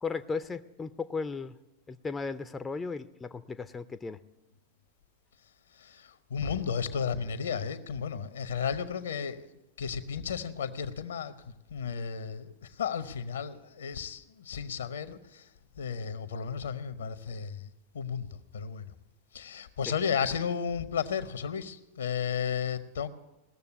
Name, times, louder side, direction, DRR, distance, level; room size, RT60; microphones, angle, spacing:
voice 1, 0.0-1.6 1.9-4.2, left 4 dB, 15° left, 11 dB, 0.4 m, -35 dB
voice 2, 5.7-9.5 9.8-15.5 15.8-18.9 19.3-23.1, left 7 dB, 65° left, 13 dB, 0.8 m, -34 dB
18.0 x 6.9 x 8.1 m, 0.99 s
figure-of-eight pair, 90°, 0 cm